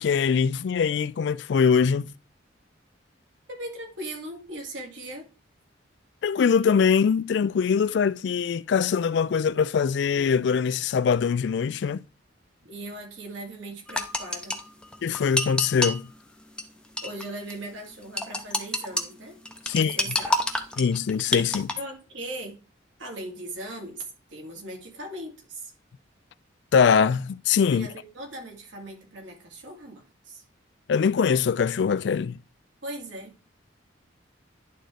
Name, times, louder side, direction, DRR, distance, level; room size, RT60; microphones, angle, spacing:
voice 1, 0.0-2.1 6.2-12.0 15.0-16.1 19.7-20.0 20.8-21.7 26.7-27.9 30.9-32.4, left 6 dB, 60° left, 0.3 m, -22 dB
voice 2, 3.5-5.3 12.6-14.6 17.0-19.4 19.7-20.3 21.8-22.6 23.0-24.0 24.3-25.7 27.7-30.4 32.8-33.3, right 1 dB, 75° right, 2.4 m, -39 dB
sound 1, 13.9-16.0 16.6-16.7 17.0-17.2 17.5-17.6 18.2-19.0 19.4-21.7, left 1 dB, 5° left, 0.6 m, -27 dB
11.0 x 3.8 x 3.4 m
head